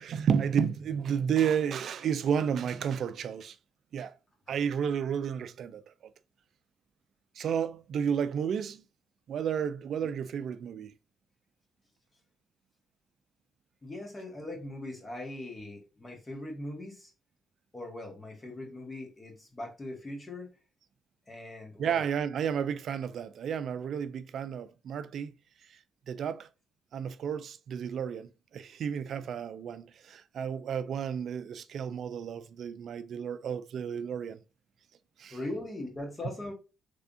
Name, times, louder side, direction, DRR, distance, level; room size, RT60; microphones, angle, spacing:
voice 1, 0.0-3.6 3.9-4.2 4.5-5.8 7.3-8.8 9.3-10.9 21.8-25.3 25.7-25.8 26.1-26.5 26.9-34.4 35.2-35.4, right 7 dB, 65° right, 0.3 m, -32 dB
voice 2, 13.8-17.1 17.7-20.5 21.3-22.1 35.3-36.5, left 1 dB, 25° left, 1.6 m, -40 dB
3.4 x 3.4 x 2.6 m
cardioid pair, 90°, 0 cm